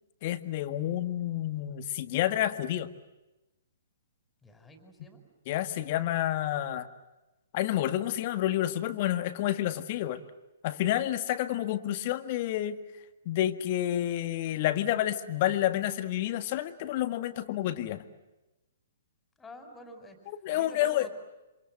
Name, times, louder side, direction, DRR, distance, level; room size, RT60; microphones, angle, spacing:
voice 1, 0.2-2.9 5.5-6.9 7.5-10.2 10.6-12.8 13.3-18.0 20.3-21.1, left 13 dB, 40° left, 10 dB, 1.8 m, -29 dB
voice 2, 4.4-5.2 19.4-20.2 20.5-21.1, equal, 10° left, 7 dB, 5.1 m, -48 dB
28.0 x 26.5 x 7.7 m, 1.0 s
figure-of-eight pair, 120°, 0 cm